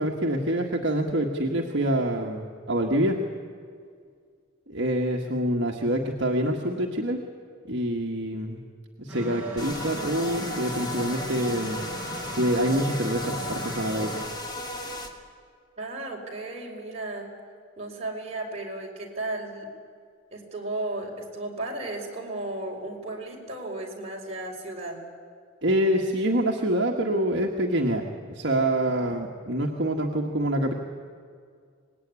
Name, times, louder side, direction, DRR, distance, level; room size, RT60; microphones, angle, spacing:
voice 1, 0.0-3.2 4.7-7.2 7.7-8.6 9.0-11.8 12.3-14.1 25.6-30.7, right 1 dB, 60° right, 0 dB, 1.7 m, -26 dB
sound 1, 9.1-14.2, right 1 dB, 5° right, 4.8 m, -38 dB
sound 2, 9.6-15.1, left 1 dB, 20° left, 2.4 m, -35 dB
voice 2, 15.8-17.3 17.8-19.7 20.3-25.0, right 2 dB, 30° right, -1 dB, 4.9 m, -34 dB
25.0 x 20.0 x 9.7 m, 2.1 s
head